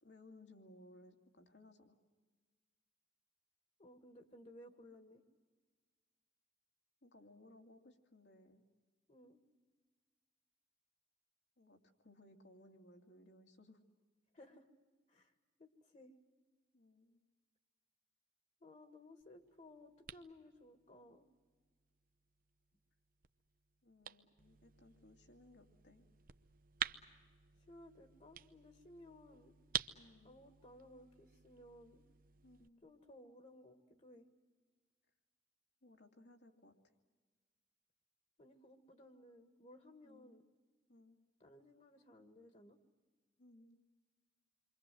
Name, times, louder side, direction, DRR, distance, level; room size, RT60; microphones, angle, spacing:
voice 1, 0.0-2.0 7.0-8.6 11.6-13.8 16.7-17.2 23.8-26.1 29.9-30.4 32.4-32.8 35.8-36.7 40.0-40.3 40.9-41.2 43.4-43.8, left 1 dB, 75° left, 3 dB, 2.5 m, -62 dB
voice 2, 3.8-5.2 9.1-9.4 14.3-14.7 15.1-15.3 15.6-16.1 18.6-21.3 27.7-29.6 30.2-32.0 32.8-34.3 38.4-40.4 41.4-42.8, left 1 dB, 40° left, 6 dB, 1.9 m, -59 dB
sound 1, 19.2-32.7, right 9 dB, 50° right, 0.8 m, -50 dB
28.5 x 24.5 x 7.8 m, 1.4 s
head